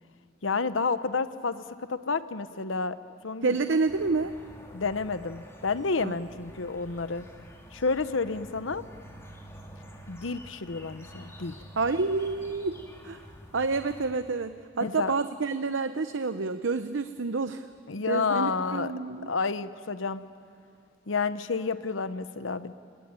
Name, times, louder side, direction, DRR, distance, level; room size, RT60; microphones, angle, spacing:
voice 1, 0.4-1.6 1.9-3.0 3.2-3.6 4.7-7.2 7.7-8.8 10.1-11.6 14.8-15.1 17.9-18.9 19.3-20.2 21.1-22.7, left 4 dB, 80° left, 13 dB, 0.9 m, -30 dB
voice 2, 3.4-4.4 6.0-6.1 11.8-13.2 13.5-17.7 18.1-19.3, right 4 dB, 75° right, 10 dB, 0.7 m, -29 dB
sound 1, 3.9-14.1, equal, 15° left, 3.1 m, -48 dB
29.0 x 20.5 x 9.0 m, 2.3 s
head